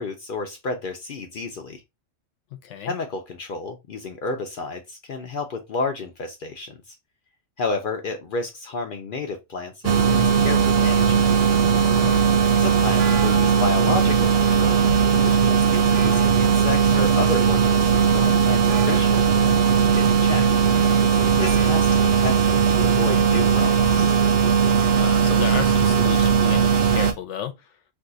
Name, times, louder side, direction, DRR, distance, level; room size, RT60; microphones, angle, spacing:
voice 1, 0.0-1.8 2.8-7.0 7.6-11.3 12.6-14.8 15.2-20.5 21.4-24.1, left 3 dB, 60° left, 0.6 m, -31 dB
voice 2, 2.5-2.9 11.9-12.4 24.9-27.7, left 8 dB, 80° left, 0.9 m, -33 dB
sound 1, 9.8-27.1, right 6 dB, 65° right, 0.7 m, -18 dB
sound 2, 10.6-10.9 13.0-13.7 15.9-16.5 18.7-19.3 21.4-21.7, right 6 dB, 90° right, 1.1 m, -36 dB
2.6 x 2.3 x 3.7 m
omnidirectional pair, 1.2 m